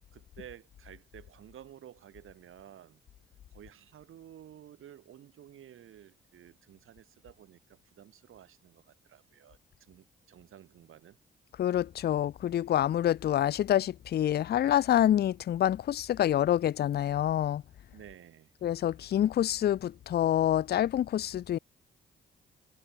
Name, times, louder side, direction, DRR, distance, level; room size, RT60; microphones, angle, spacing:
voice 1, 0.1-3.0 3.5-11.2 17.9-18.5, right 10 dB, 75° right, 3.1 m, -53 dB
voice 2, 11.6-17.6 18.6-21.6, left 11 dB, 50° left, 0.4 m, -27 dB
supercardioid pair, 50°, 21 cm